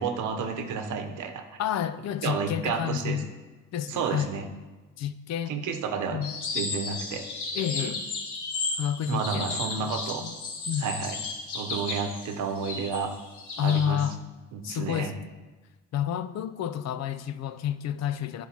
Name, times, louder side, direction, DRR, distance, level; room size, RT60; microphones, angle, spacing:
voice 1, 0.0-1.4 2.2-3.2 3.9-4.5 5.5-6.2 6.5-7.3 7.8-7.9 9.1-10.2 10.8-11.2 11.5-13.1 13.6-14.0 14.5-15.1, right 5 dB, 80° right, 6 dB, 0.8 m, -31 dB
voice 2, 1.6-3.3 3.7-4.3 5.0-5.6 6.1-6.3 7.5-8.0 8.8-9.9 10.2-10.3 10.7-10.9 13.6-14.2 14.6-15.2 15.9-18.5, left 9 dB, 60° left, 12 dB, 0.5 m, -30 dB
sound 1, 6.2-13.8, left 3 dB, 75° left, 1.7 m, -34 dB
13.0 x 4.4 x 2.9 m, 1.2 s
cardioid pair, 90°, 30 cm